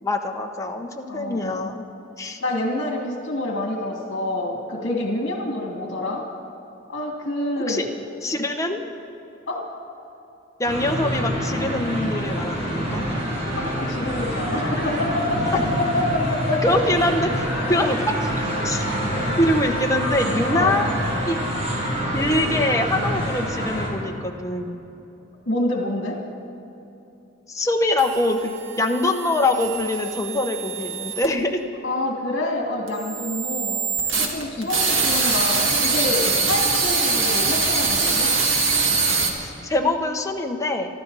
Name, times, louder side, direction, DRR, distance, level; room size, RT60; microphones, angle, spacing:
voice 1, 0.0-1.9 2.2-2.4 7.7-7.8 8.2-8.8 10.6-13.0 15.5-15.6 16.6-18.3 18.6-18.9 19.4-21.0 21.3-21.4 22.1-24.8 27.5-31.6 34.6-34.7 39.4-41.0, left 1 dB, 15° left, 3 dB, 1.0 m, -24 dB
voice 2, 1.1-1.7 2.4-6.2 6.9-7.9 9.5-9.6 13.6-16.6 17.6-17.7 20.5-20.8 25.5-26.2 31.8-38.3, left 1 dB, 65° left, 0 dB, 2.3 m, -27 dB
sound 1, 10.6-23.9, equal, 35° right, 3.4 m, -26 dB
sound 2, 28.0-31.3 32.9-39.3, right 4 dB, 70° right, 1.9 m, -23 dB
26.0 x 12.0 x 4.1 m, 2.9 s
head